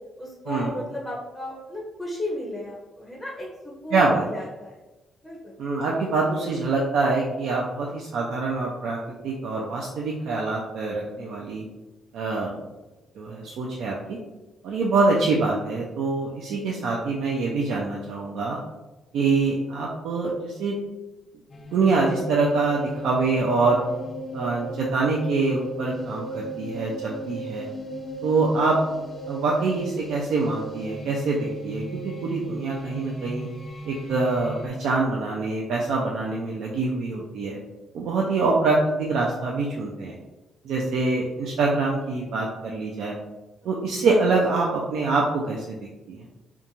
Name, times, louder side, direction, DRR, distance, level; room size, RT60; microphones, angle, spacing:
voice 1, 0.2-4.7 5.2-5.5 43.6-43.7, left 1 dB, 5° left, -4 dB, 0.6 m, -35 dB
voice 2, 3.9-4.3 5.6-9.0 9.2-11.6 12.1-12.5 13.2-14.2 14.6-18.6 19.1-20.7 21.7-23.8 24.3-27.7 28.2-28.8 29.3-33.5 33.8-37.6 37.9-40.2 40.6-43.2 43.7-46.2, right 3 dB, 75° right, -2 dB, 0.4 m, -25 dB
sound 1, 21.5-34.7, right 2 dB, 35° left, 0.3 m, -36 dB
2.4 x 2.2 x 2.9 m, 1.1 s
cardioid pair, 90°, 0 cm